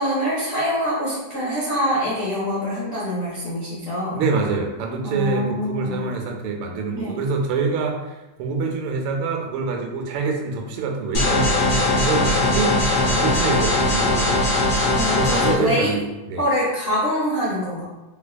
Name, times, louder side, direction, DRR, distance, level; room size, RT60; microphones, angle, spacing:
voice 1, 0.0-4.2 5.0-6.0 6.9-7.1 14.9-15.9 16.4-17.8, equal, 80° left, -8 dB, 0.5 m, -24 dB
voice 2, 4.2-14.6 15.1-16.5, right 4 dB, 90° right, 2 dB, 1.5 m, -26 dB
sound 1, 11.1-15.5, left 2 dB, 60° left, 1.1 m, -20 dB
3.4 x 3.3 x 2.2 m, 1.0 s
omnidirectional pair, 2.3 m